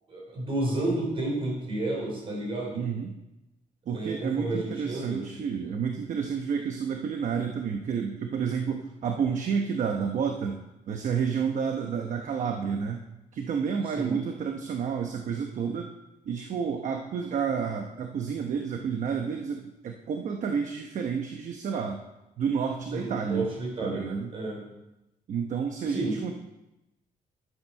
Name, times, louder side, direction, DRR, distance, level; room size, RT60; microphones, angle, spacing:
voice 1, 0.1-2.8 3.9-5.2 14.0-14.2 22.9-24.6 25.9-26.2, right 2 dB, 35° right, -2 dB, 5.2 m, -31 dB
voice 2, 2.7-3.1 3.9-10.6 10.9-13.0 13.3-15.9 16.2-22.0 22.4-23.5 23.8-24.3 25.3-26.3, right 6 dB, 55° right, 4 dB, 1.0 m, -30 dB
11.0 x 9.1 x 6.4 m, 0.95 s
wide cardioid pair, 165°, 15 cm